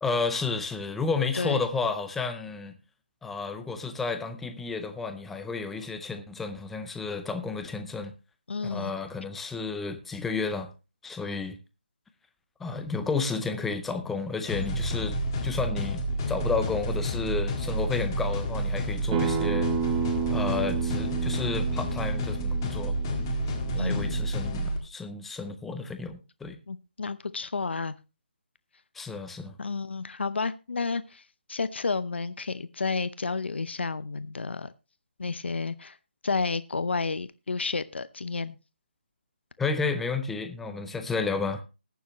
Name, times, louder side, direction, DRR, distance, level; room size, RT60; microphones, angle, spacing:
voice 1, 0.0-2.8 3.2-8.1 8.7-10.7 11.0-11.6 12.6-15.2 15.4-16.0 16.3-19.7 20.3-22.9 23.7-26.6 28.9-29.5 39.6-41.6, left 4 dB, 5° left, 0.5 m, -31 dB
voice 2, 8.5-8.9 23.8-24.2 26.7-27.9 29.6-31.2 31.5-34.7 35.2-36.0 36.2-38.6, left 4 dB, 75° left, 0.8 m, -31 dB
sound 1, 14.5-24.8, equal, 20° left, 1.7 m, -29 dB
Acoustic guitar, 19.1-24.3, right 8 dB, 15° right, 0.9 m, -32 dB
20.0 x 7.1 x 3.0 m
hypercardioid pair, 170°, 6 cm